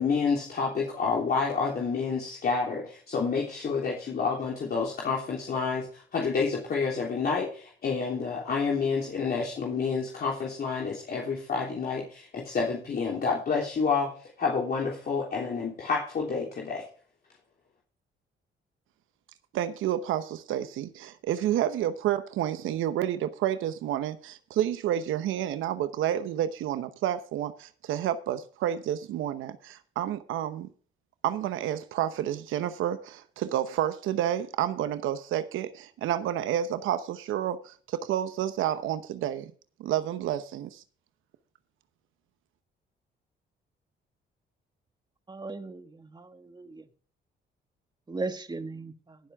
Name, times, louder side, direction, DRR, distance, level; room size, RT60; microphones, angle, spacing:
voice 1, 0.0-14.1 14.4-16.9, left 5 dB, 50° left, 3.3 m, -29 dB
voice 2, 19.5-30.7 31.2-39.5 39.8-40.8, right 11 dB, 85° right, 0.9 m, -30 dB
voice 3, 45.3-46.8 48.1-49.2, right 3 dB, 20° right, 1.7 m, -37 dB
17.5 x 7.5 x 3.5 m
cardioid pair, 90°, 20 cm